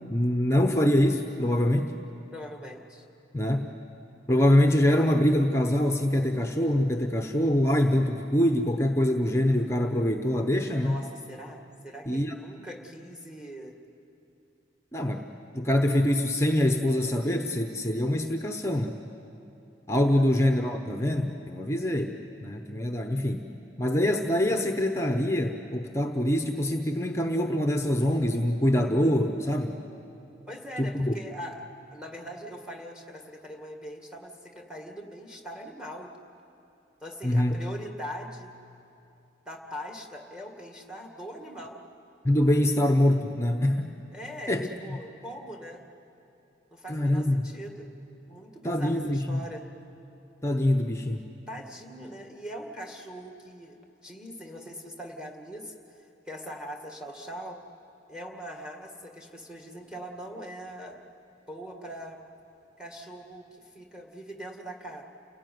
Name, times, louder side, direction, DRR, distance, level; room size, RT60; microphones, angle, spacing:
voice 1, 0.1-1.9 3.3-3.7 4.3-11.0 12.1-12.3 14.9-15.3 15.5-19.0 19.9-22.1 22.4-23.5 23.8-29.8 30.8-31.2 37.2-37.6 42.2-43.9 44.5-45.0 46.9-47.5 48.6-49.4 50.4-51.3, left 1 dB, 15° left, 4 dB, 0.9 m, -24 dB
voice 2, 2.3-3.1 10.8-13.8 20.1-20.2 30.5-36.1 37.0-38.5 39.5-41.8 44.1-45.8 46.7-47.9 48.3-49.6 51.5-57.6 58.1-61.0 61.5-62.2 62.8-65.0, equal, 5° right, 2 dB, 2.0 m, -41 dB
29.5 x 17.5 x 9.4 m, 2.8 s
head